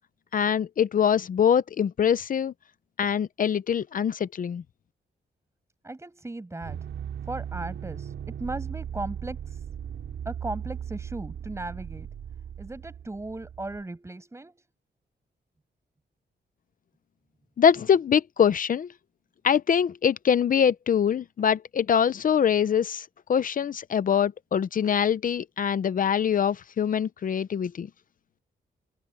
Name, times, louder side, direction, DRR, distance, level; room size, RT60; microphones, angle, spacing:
voice 1, 0.3-2.5 3.0-4.6 17.6-18.9 19.4-27.9, left 8 dB, 45° left, 0.6 m, -24 dB
voice 2, 5.8-6.8 7.3-9.6 10.3-12.1 12.6-14.6, right 2 dB, 15° right, 7.0 m, -37 dB
sound 1, 6.6-13.8, right 8 dB, 85° right, 5.3 m, -37 dB
wide cardioid pair, 170°, 19 cm